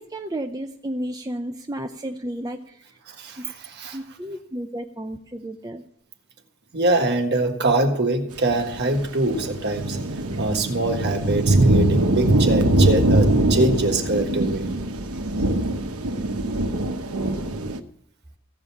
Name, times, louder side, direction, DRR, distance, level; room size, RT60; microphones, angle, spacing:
voice 1, 0.0-3.0 3.4-3.5 3.9-5.8, right 1 dB, 15° right, 0.6 m, -32 dB
voice 2, 3.1-4.0 6.7-10.0 10.4-14.7, right 2 dB, 50° right, 1.6 m, -23 dB
sound 1, 8.7-9.1 9.3-17.8, right 1 dB, 80° right, 1.0 m, -22 dB
15.5 x 5.4 x 8.3 m
head